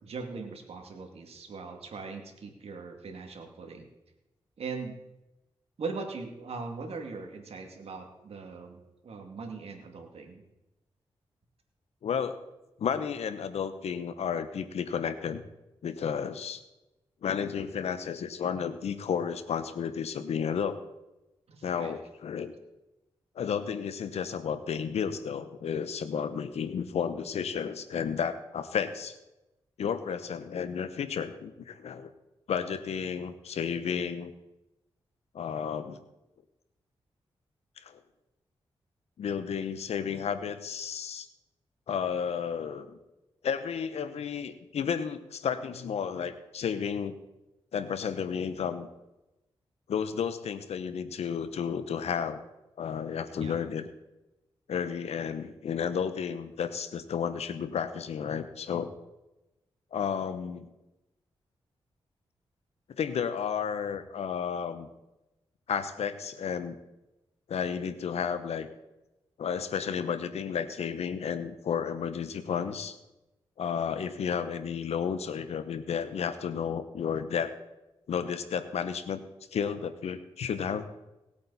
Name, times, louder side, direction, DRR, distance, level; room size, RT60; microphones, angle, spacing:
voice 1, 0.0-3.9 4.6-5.0 5.8-10.4 21.5-21.9 53.4-53.6, right 4 dB, 70° right, 3 dB, 2.4 m, -40 dB
voice 2, 12.0-12.4 12.8-15.4 15.8-16.6 17.2-20.8 21.6-22.5 23.4-29.2 29.8-32.1 32.5-34.3 35.3-36.0 37.8-37.9 39.2-41.3 41.9-43.0 43.4-47.2 47.7-48.9 49.9-52.4 52.8-53.8 54.7-58.9 59.9-60.7 63.0-64.9 65.7-66.7 67.5-68.7 69.4-73.0 73.6-77.5 78.1-79.2 79.5-80.8, left 7 dB, 80° left, 11 dB, 1.0 m, -32 dB
19.0 x 8.5 x 4.2 m, 0.98 s
cardioid pair, 50°, 11 cm